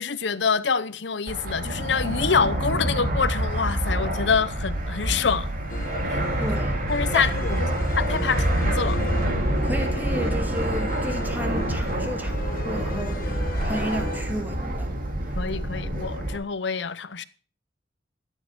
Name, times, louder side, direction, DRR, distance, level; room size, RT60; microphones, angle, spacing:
voice 1, 0.0-5.5 6.1-6.2 6.9-9.0 15.3-17.2, left 5 dB, 70° left, 0.8 m, -26 dB
Fixed-wing aircraft airplane, 1.3-16.4, right 1 dB, 50° right, 2.4 m, -27 dB
sound 1, 5.7-14.2, left 2 dB, 50° left, 1.3 m, -37 dB
voice 2, 6.4-6.8 7.1-7.3 9.6-15.0, equal, 10° right, 2.3 m, -32 dB
13.5 x 8.3 x 5.8 m
head